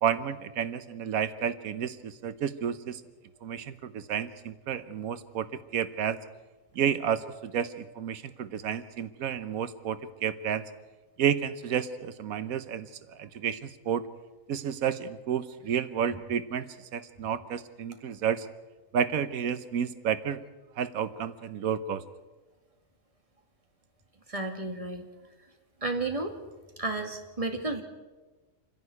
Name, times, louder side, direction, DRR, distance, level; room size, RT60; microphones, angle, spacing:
voice 1, 0.0-3.0 3.4-5.5 5.7-6.2 6.8-10.6 11.2-14.0 14.5-18.5 18.9-20.4 20.8-22.0, right 8 dB, 90° right, 13 dB, 1.3 m, -31 dB
voice 2, 24.3-25.1 25.8-26.4 26.8-27.8, right 2 dB, 25° right, 4 dB, 2.2 m, -32 dB
27.5 x 11.0 x 9.6 m, 1.2 s
omnidirectional pair, 1.4 m